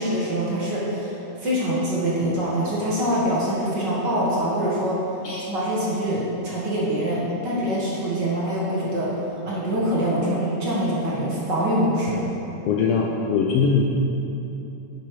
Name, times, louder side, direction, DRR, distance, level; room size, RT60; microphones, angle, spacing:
voice 1, 0.0-5.0 5.5-12.2, equal, 40° right, -6 dB, 1.9 m, -24 dB
voice 2, 12.7-13.8, left 5 dB, 90° left, -1 dB, 1.3 m, -21 dB
10.0 x 9.2 x 4.8 m, 3.0 s
omnidirectional pair, 3.6 m